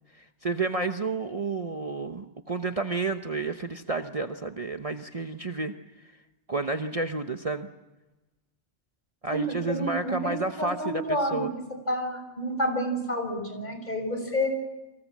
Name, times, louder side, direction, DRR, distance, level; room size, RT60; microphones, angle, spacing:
voice 1, 0.1-5.7 6.0-6.1 6.5-7.7 9.2-11.5, right 3 dB, 30° right, 6 dB, 1.0 m, -31 dB
voice 2, 9.7-11.5 11.9-14.5, equal, 40° left, 5 dB, 6.6 m, -29 dB
30.0 x 25.0 x 7.4 m, 1.1 s
omnidirectional pair, 1.2 m